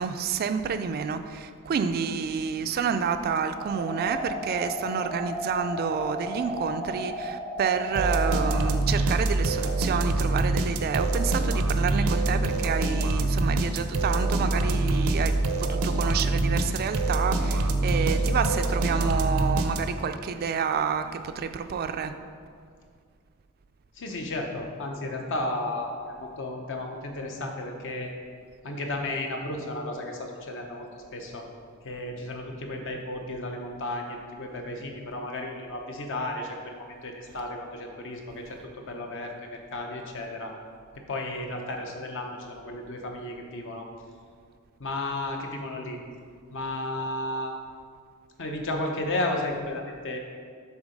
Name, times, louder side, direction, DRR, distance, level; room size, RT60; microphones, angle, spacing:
voice 1, 0.0-22.1, right 6 dB, 45° right, 10 dB, 0.3 m, -29 dB
sound 1, 3.7-8.7, equal, 15° left, 0.7 m, -34 dB
sound 2, 7.9-20.2, right 2 dB, 90° right, 0.6 m, -25 dB
voice 2, 23.9-25.9 26.2-28.1 28.6-31.5 31.8-40.5 41.1-43.9 44.8-46.0 46.5-47.5 48.4-50.2, left 1 dB, 60° left, 2 dB, 0.9 m, -33 dB
7.1 x 3.8 x 5.2 m, 2.1 s
head